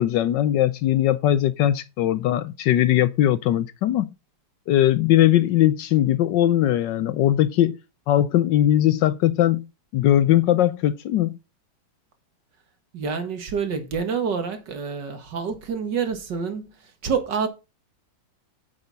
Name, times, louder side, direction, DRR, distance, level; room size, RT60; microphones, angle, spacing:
voice 1, 0.0-4.1 4.7-7.8 8.1-9.7 9.9-11.4, left 12 dB, 70° left, 1.2 m, -20 dB
voice 2, 12.9-17.5, right 6 dB, 60° right, 2.3 m, -27 dB
9.2 x 7.2 x 4.1 m
omnidirectional pair, 2.2 m